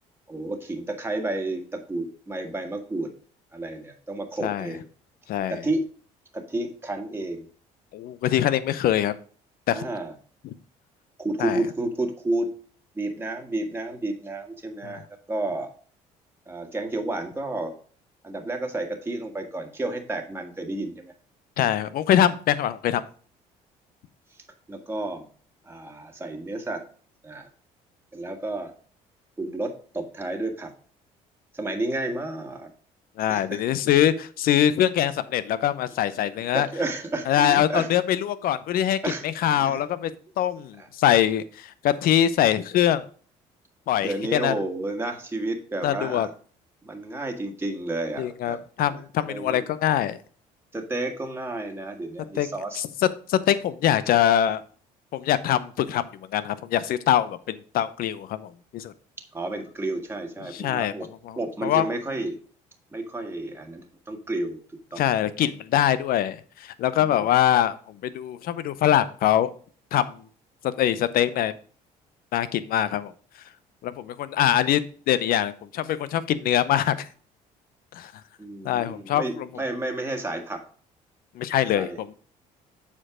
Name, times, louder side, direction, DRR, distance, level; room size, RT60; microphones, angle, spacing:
voice 1, 0.3-3.1 3.5-4.9 5.5-5.8 6.3-7.5 9.7-10.1 11.2-12.5 13.0-15.7 16.5-17.7 18.2-21.1 24.7-25.3 25.7-26.8 27.2-27.5 28.1-28.7 29.4-30.7 31.5-32.7 33.3-33.6 36.3-37.9 39.0-39.8 40.8-40.9 44.0-46.3 46.8-48.6 48.9-49.0 49.3-49.6 50.7-52.8 59.3-61.1 61.4-62.4 62.9-64.6 64.9-65.0 67.0-67.3 78.4-80.6 81.7-82.0, right 2 dB, 15° right, 3 dB, 1.7 m, -31 dB
voice 2, 5.3-5.6 7.9-9.2 9.7-9.8 11.4-11.6 14.8-15.0 21.6-23.0 33.2-36.7 37.3-39.0 39.2-40.1 40.4-43.0 43.9-44.6 45.8-46.3 48.2-50.2 52.4-52.5 52.7-52.9 53.3-54.6 55.1-56.1 56.3-58.9 60.5-61.9 65.0-67.8 68.0-69.5 69.9-70.2 70.6-71.5 72.3-73.1 73.8-74.8 75.1-77.1 77.9-78.1 78.6-79.5 81.4-82.1, left 11 dB, 65° left, 15 dB, 0.7 m, -23 dB
7.2 x 4.6 x 4.9 m, 0.43 s
supercardioid pair, 75°, 16 cm